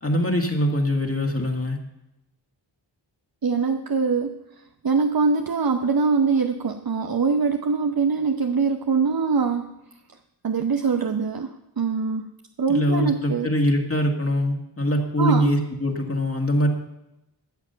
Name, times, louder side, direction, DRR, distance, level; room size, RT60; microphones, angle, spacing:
voice 1, 0.0-1.8 12.7-16.7, equal, 30° left, 2 dB, 1.8 m, -23 dB
voice 2, 3.4-4.3 4.8-9.7 10.4-12.3 12.6-13.5 15.2-15.6, right 5 dB, 55° right, 6 dB, 0.8 m, -23 dB
13.0 x 7.2 x 6.7 m, 0.90 s
wide cardioid pair, 60°, 44 cm